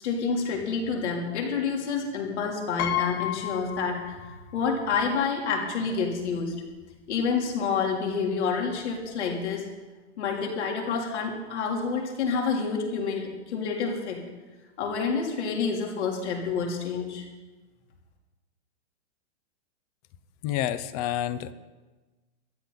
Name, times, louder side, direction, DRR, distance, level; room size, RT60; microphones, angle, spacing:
voice 1, 0.0-4.3 4.5-6.5 7.1-9.7 10.2-14.2 14.8-17.2, left 5 dB, 70° left, 0 dB, 3.4 m, -28 dB
Piano, 2.8-4.6 4.9-5.0 6.2-6.3 6.6-6.8, left 11 dB, 20° left, 0.4 m, -32 dB
voice 2, 20.4-21.5, left 12 dB, 35° left, 14 dB, 0.8 m, -29 dB
24.0 x 10.5 x 4.1 m, 1.2 s
hypercardioid pair, 150°, 35 cm